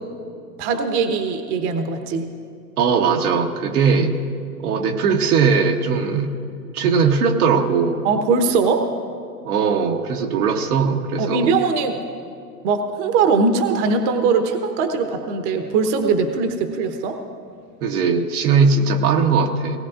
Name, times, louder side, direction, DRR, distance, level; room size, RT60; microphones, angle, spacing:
voice 1, 0.6-2.3 8.0-8.9 11.2-11.9 12.6-17.2, right 4 dB, 45° right, 6 dB, 1.1 m, -20 dB
voice 2, 2.8-4.2 4.6-6.3 6.7-8.0 9.4-11.5 17.8-19.8, right 5 dB, 65° right, 3 dB, 1.2 m, -19 dB
18.5 x 17.5 x 2.5 m, 2.4 s
hypercardioid pair, 110°, 48 cm